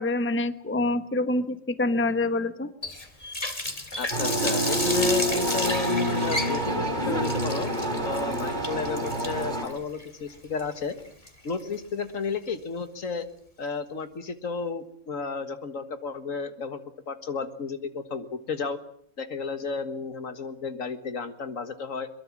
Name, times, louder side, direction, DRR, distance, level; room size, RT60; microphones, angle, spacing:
voice 1, 0.0-2.7, left 2 dB, 10° left, 11 dB, 1.0 m, -26 dB
Water tap faucet, 2.8-11.7, left 2 dB, 25° left, 2.2 m, -33 dB
voice 2, 4.0-7.7 8.0-11.0 11.4-13.3 13.6-16.8 17.1-18.8 19.2-22.1, left 4 dB, 70° left, 9 dB, 2.0 m, -32 dB
sound 1, 4.1-9.7, right 1 dB, 35° right, 3.5 m, -27 dB
23.0 x 22.0 x 7.4 m, 0.64 s
omnidirectional pair, 1.4 m